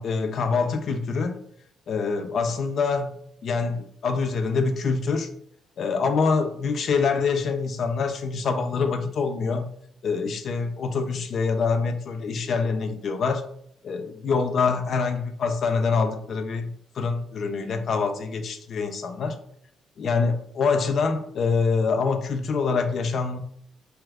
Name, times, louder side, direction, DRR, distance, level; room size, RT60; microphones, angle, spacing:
voice 1, 0.0-1.4 1.9-3.1 3.4-5.3 5.8-9.6 10.0-13.5 13.8-16.7 17.0-19.4 20.0-23.4, left 4 dB, 60° left, 6 dB, 0.4 m, -25 dB
2.8 x 2.3 x 3.4 m, 0.64 s
cardioid pair, 90°, 0 cm